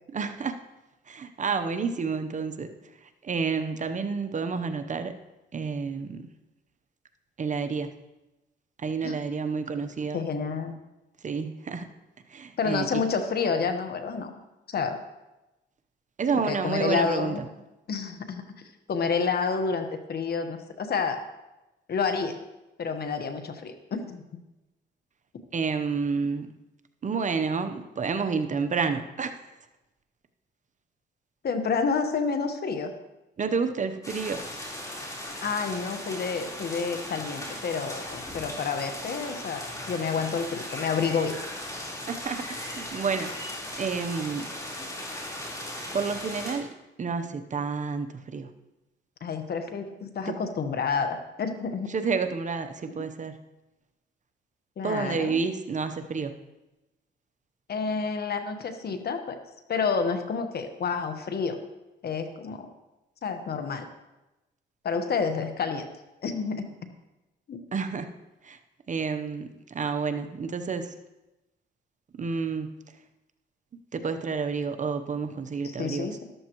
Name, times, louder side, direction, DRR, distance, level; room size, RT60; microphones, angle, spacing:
voice 1, 0.1-0.6 1.1-2.7 3.2-5.1 5.5-6.3 7.4-7.9 8.8-10.3 11.2-11.9 12.3-13.0 16.2-17.3 25.5-26.5 27.0-29.4 33.4-34.4 42.1-43.3 43.8-44.5 45.9-46.7 47.0-48.5 50.3-50.4 51.9-53.3 54.8-56.3 67.7-68.1 68.4-68.6 68.9-70.9 72.2-72.7 73.9-76.1, right 5 dB, 40° right, 9 dB, 0.9 m, -29 dB
voice 2, 10.1-10.7 12.6-14.3 14.7-15.0 16.3-17.4 17.9-18.4 18.9-21.2 21.9-22.4 22.8-24.2 31.4-32.9 35.4-41.4 49.2-51.9 54.8-55.4 57.7-59.4 59.7-61.6 62.0-62.7 63.2-63.9 64.8-65.9 66.2-66.7 67.5-67.6 75.6-76.2, left 5 dB, 50° left, 7 dB, 1.3 m, -29 dB
sound 1, 34.0-46.5, left 1 dB, 15° left, 4.0 m, -37 dB
13.5 x 12.5 x 3.1 m, 1.0 s
cardioid pair, 90°, 20 cm